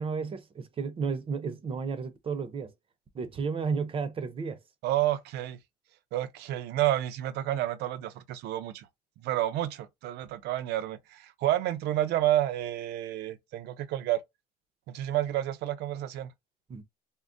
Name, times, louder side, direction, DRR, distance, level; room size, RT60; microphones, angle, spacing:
voice 1, 0.0-2.7 3.1-4.6 16.7-16.8, right 5 dB, 35° right, 0.6 m, -32 dB
voice 2, 4.8-5.6 6.1-8.9 9.2-14.2 14.9-16.3, right 13 dB, 80° right, 0.5 m, -30 dB
3.6 x 2.0 x 2.6 m
cardioid pair, 110°, 17 cm